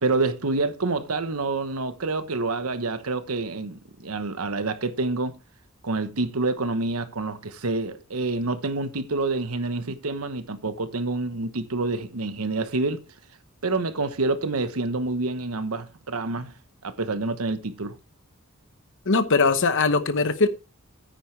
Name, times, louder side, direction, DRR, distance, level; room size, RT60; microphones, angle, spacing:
voice 1, 0.0-5.4 5.8-13.1 13.6-16.5 16.8-18.0, right 3 dB, 80° right, 1.1 m, -27 dB
voice 2, 19.1-20.5, left 4 dB, 60° left, 1.0 m, -20 dB
9.4 x 9.1 x 3.3 m
head